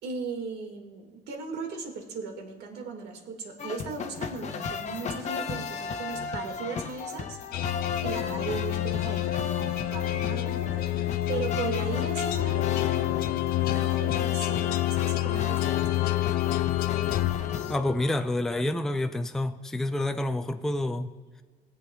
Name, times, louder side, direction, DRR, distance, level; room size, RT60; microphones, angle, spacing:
voice 1, 0.0-16.1, right 4 dB, 80° right, 4 dB, 1.7 m, -38 dB
sound 1, 3.6-17.8, left 5 dB, 45° left, 0.8 m, -36 dB
sound 2, 7.5-18.2, left 15 dB, 65° left, 0.4 m, -28 dB
voice 2, 17.7-21.1, left 1 dB, 5° left, 7 dB, 0.4 m, -28 dB
19.5 x 7.9 x 2.2 m, 1.4 s
cardioid pair, 110°, 17 cm